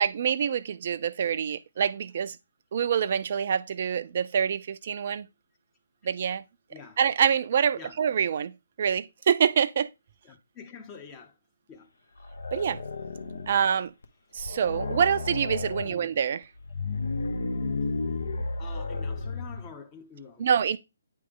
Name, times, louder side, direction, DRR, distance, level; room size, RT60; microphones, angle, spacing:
voice 1, 0.0-2.4 2.7-5.3 6.0-6.4 7.0-9.9 12.5-12.8 13.5-13.9 14.3-16.4 20.4-20.8, right 7 dB, 45° right, 0.4 m, -26 dB
voice 2, 6.7-7.0 7.8-8.0 10.2-11.4 11.7-11.9 13.5-13.7 15.8-16.1 18.6-20.5, left 5 dB, 20° left, 0.9 m, -46 dB
sound 1, 12.2-13.7 14.0-14.1 14.4-15.9 16.6-19.7, left 3 dB, 70° left, 0.9 m, -32 dB
9.1 x 3.2 x 3.7 m
figure-of-eight pair, 140°, 0 cm